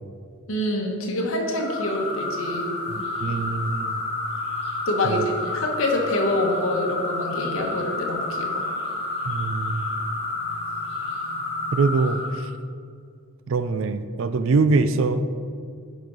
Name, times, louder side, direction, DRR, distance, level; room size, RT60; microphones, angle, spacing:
voice 1, 0.5-3.4 4.9-8.7, left 1 dB, 65° left, 1 dB, 1.2 m, -26 dB
sound 1, 1.5-12.4, left 2 dB, 30° left, 2.2 m, -30 dB
voice 2, 3.2-4.0 5.0-5.2 9.3-9.9 11.7-12.2 13.5-15.4, right 3 dB, 60° right, 11 dB, 0.4 m, -23 dB
10.5 x 5.1 x 3.9 m, 2.2 s
head